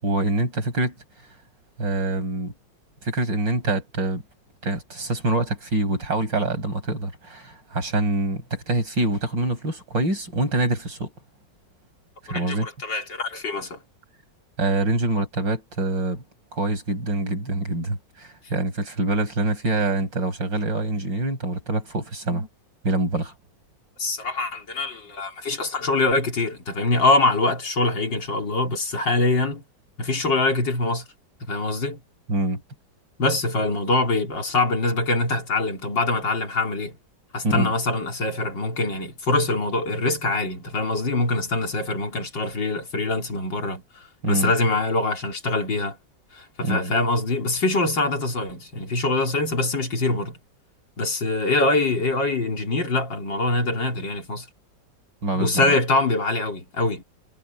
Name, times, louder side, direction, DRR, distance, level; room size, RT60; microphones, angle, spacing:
voice 1, 0.0-0.9 1.8-2.5 3.0-4.2 4.6-11.1 12.2-12.7 14.6-16.2 16.5-22.5 22.8-23.3 32.3-32.6 37.4-37.7 44.2-44.5 46.6-46.9 55.2-55.8, right 2 dB, 90° right, 7.8 m, -25 dB
voice 2, 12.3-13.8 24.0-29.6 30.0-31.0 31.4-32.0 33.2-37.0 37.3-46.0 46.3-50.4 51.0-54.5 55.4-57.0, left 2 dB, 85° left, 4.4 m, -24 dB
omnidirectional pair, 1.9 m